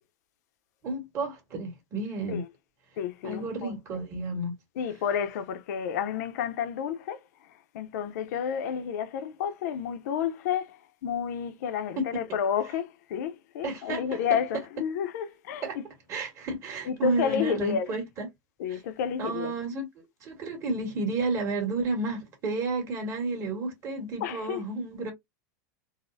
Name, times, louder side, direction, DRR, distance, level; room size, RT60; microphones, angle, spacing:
voice 1, 0.8-2.4 3.2-4.5 12.0-12.2 13.6-14.4 15.6-15.8 16.1-18.3 18.7-18.8 19.2-19.9 20.2-25.1, right 2 dB, 30° right, 1.7 m, -31 dB
voice 2, 3.0-3.7 4.8-7.2 7.7-15.8 16.8-17.9 18.6-19.5 24.2-24.6, left 8 dB, 70° left, 0.6 m, -30 dB
4.0 x 2.1 x 2.5 m
supercardioid pair, 155°, 9 cm